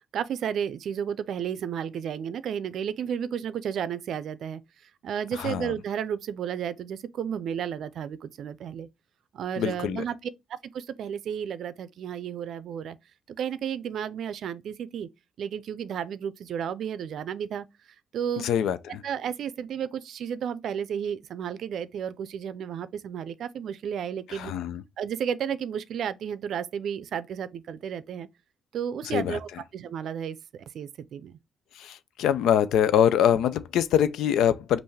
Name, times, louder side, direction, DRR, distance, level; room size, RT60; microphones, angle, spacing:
voice 1, 0.1-4.6 5.0-8.9 9.3-10.2 10.5-13.0 13.4-15.1 15.4-17.7 18.1-18.5 19.0-24.5 25.0-28.3 28.7-31.4, right 8 dB, 70° right, 0.5 m, -32 dB
voice 2, 5.3-5.7 9.6-10.0 18.4-19.0 24.3-24.8 29.0-29.4 31.7-34.8, left 9 dB, 80° left, 0.5 m, -24 dB
5.4 x 2.5 x 3.2 m
cardioid pair, 90°, 0 cm